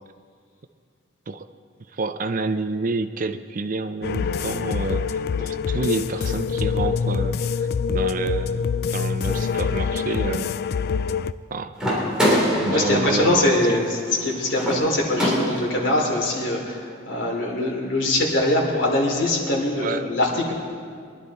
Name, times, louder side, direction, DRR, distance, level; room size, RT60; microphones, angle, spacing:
voice 1, 1.9-10.6 11.5-11.7 12.6-13.8 19.8-20.0, right 3 dB, 45° right, 8 dB, 0.5 m, -29 dB
sound 1, 4.0-11.3, left 6 dB, 55° left, 0.3 m, -25 dB
sound 2, 11.8-15.9, equal, 5° right, 3.4 m, -25 dB
voice 2, 12.7-20.5, left 1 dB, 80° left, -2 dB, 3.2 m, -22 dB
23.5 x 11.0 x 4.2 m, 2.1 s
head